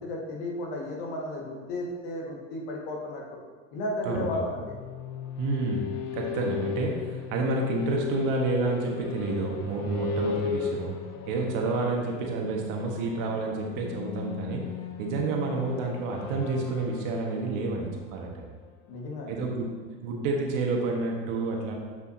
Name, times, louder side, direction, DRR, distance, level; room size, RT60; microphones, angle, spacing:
voice 1, 0.0-3.2 3.7-4.7 18.9-19.4, left 1 dB, 60° left, -1 dB, 1.8 m, -34 dB
voice 2, 4.0-4.5 5.4-10.9 11.3-14.6 15.0-18.4 19.3-19.7 20.0-21.7, right 3 dB, 55° right, 0 dB, 1.5 m, -29 dB
sound 1, 4.5-19.1, left 7 dB, 45° left, 0.9 m, -37 dB
8.7 x 5.4 x 2.8 m, 1.5 s
hypercardioid pair, 95°, 38 cm